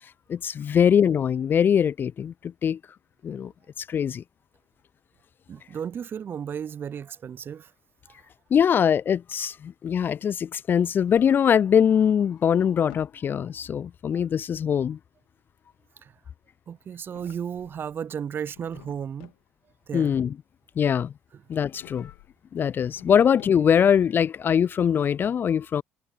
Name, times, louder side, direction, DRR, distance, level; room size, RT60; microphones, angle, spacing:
voice 1, 0.3-2.8 3.2-3.5 3.8-4.2 8.5-15.0 19.9-20.4 20.8-21.1 21.5-22.1 22.5-25.8, left 8 dB, 35° left, 0.4 m, -22 dB
voice 2, 5.5-7.7 16.0-16.1 16.7-19.3 19.9-20.1, right 8 dB, 35° right, 0.5 m, -34 dB
Drawer open or close, 10.8-11.7 12.1-13.2 16.8-18.0 18.4-19.5 21.7-22.4 22.7-24.0, left 30 dB, 70° left, 3.1 m, -52 dB
figure-of-eight pair, 55°, 6 cm